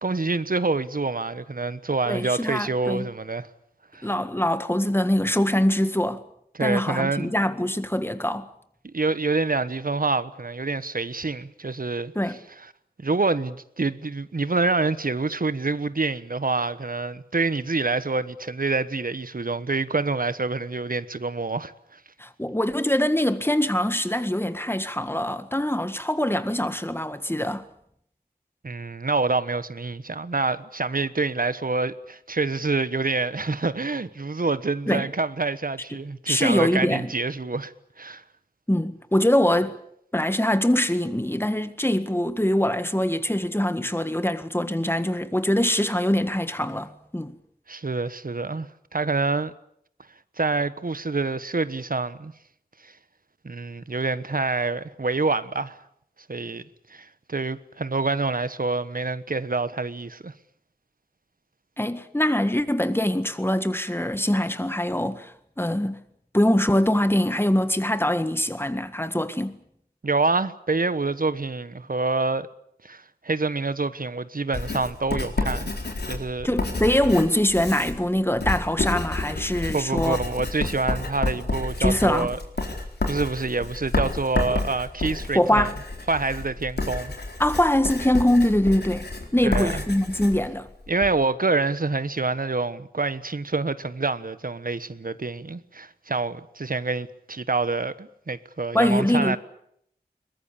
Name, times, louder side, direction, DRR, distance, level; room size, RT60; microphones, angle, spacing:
voice 1, 0.0-3.5 3.9-4.1 6.5-7.3 8.8-12.1 13.0-22.0 28.6-37.7 38.0-38.2 47.7-49.5 50.4-52.3 52.8-52.9 53.4-55.8 56.3-56.6 56.9-60.3 70.0-72.5 72.8-75.7 76.0-76.5 79.7-82.4 83.1-85.7 86.1-87.1 89.4-89.8 90.9-99.4, right 3 dB, 60° right, 1.2 m, -26 dB
voice 2, 2.1-3.1 4.0-6.2 6.6-8.5 12.1-12.4 22.2-27.7 34.9-35.1 36.2-37.1 38.7-39.8 40.1-47.3 61.8-65.3 65.6-66.0 66.3-69.6 76.4-80.2 81.8-82.3 85.3-85.8 87.4-90.7 98.7-99.4, left 1 dB, 15° left, 1.7 m, -23 dB
Writing, 74.5-91.2, left 2 dB, 80° left, 4.3 m, -30 dB
22.5 x 21.0 x 8.6 m
wide cardioid pair, 60°, 17 cm